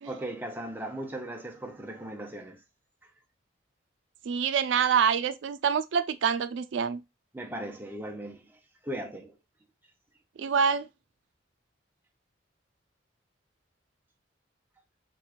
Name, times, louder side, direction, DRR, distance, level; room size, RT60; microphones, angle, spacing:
voice 1, 0.0-2.6 7.3-9.4, right 1 dB, 10° right, 0.6 m, -38 dB
voice 2, 4.3-7.0 10.4-10.9, right 7 dB, 75° right, 0.4 m, -26 dB
6.0 x 2.3 x 2.4 m
head